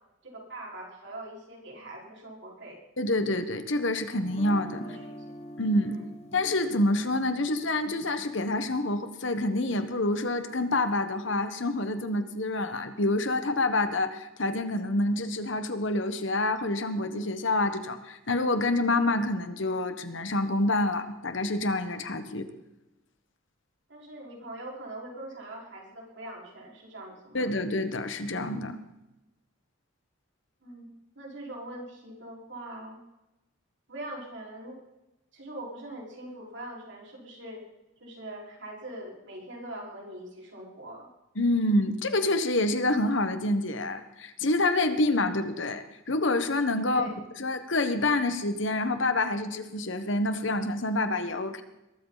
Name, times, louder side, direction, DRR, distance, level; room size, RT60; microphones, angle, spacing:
voice 1, 0.2-2.8 4.8-5.2 5.8-6.0 23.9-27.5 30.6-33.0 33.9-34.8 35.3-37.6 38.0-41.1 46.8-47.2, right 1 dB, 60° right, -2 dB, 4.9 m, -42 dB
voice 2, 3.0-4.8 5.6-6.0 6.3-22.5 27.3-28.8 41.4-47.1 47.4-51.6, left 2 dB, 60° left, 9 dB, 1.3 m, -27 dB
Guitar, 4.2-10.2, equal, 30° left, 1.7 m, -46 dB
22.0 x 13.5 x 4.1 m, 0.95 s
head